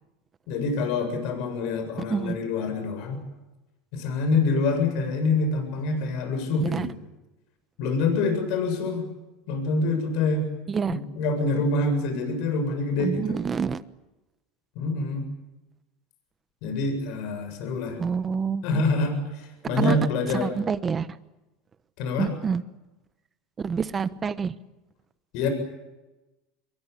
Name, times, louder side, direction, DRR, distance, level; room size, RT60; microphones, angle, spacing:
voice 1, 0.5-3.2 3.9-6.9 7.8-9.1 9.5-10.5 10.9-13.4 14.8-15.2 16.6-18.0 18.6-20.5 22.0-22.3 25.3-25.5, left 3 dB, 60° left, 7 dB, 7.7 m, -26 dB
voice 2, 10.7-11.0 13.0-13.8 18.0-18.8 19.8-20.0 20.4-21.1 22.2-22.6 23.6-24.5, right 6 dB, 20° right, 14 dB, 1.1 m, -27 dB
26.0 x 23.0 x 8.5 m, 1.1 s
supercardioid pair, 135°, 0 cm